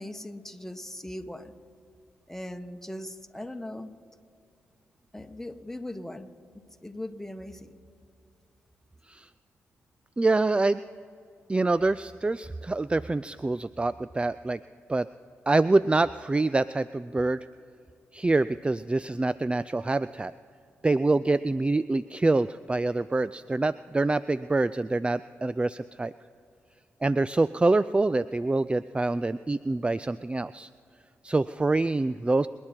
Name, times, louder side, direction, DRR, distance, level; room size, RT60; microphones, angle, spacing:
voice 1, 0.0-1.6 2.3-3.9 5.1-7.7, left 1 dB, 5° left, 7 dB, 1.4 m, -39 dB
voice 2, 10.2-10.8 11.5-14.6 14.9-15.1 15.5-17.5 18.1-20.3 20.8-26.1 27.0-30.7 31.2-32.5, right 2 dB, 20° right, 16 dB, 0.3 m, -25 dB
27.0 x 10.0 x 4.4 m, 2.5 s
hypercardioid pair, 40°, 6 cm